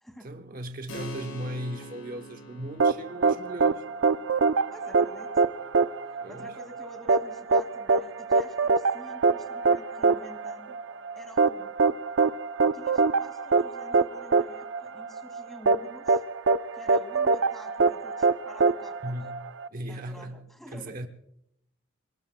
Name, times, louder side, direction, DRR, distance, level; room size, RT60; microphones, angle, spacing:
voice 1, 0.2-3.8 6.2-6.5 19.0-20.4 20.7-21.1, right 1 dB, 45° right, 0.9 m, -37 dB
Keyboard (musical), 0.9-11.1, right 1 dB, 75° left, 7.7 m, -48 dB
sound 1, 2.8-19.7, right 4 dB, 65° right, 0.5 m, -24 dB
voice 2, 4.7-5.3 6.1-10.8 11.2-11.7 12.6-16.2 16.7-19.1 19.9-21.0, equal, ahead, 2.2 m, -48 dB
30.0 x 20.0 x 2.2 m
head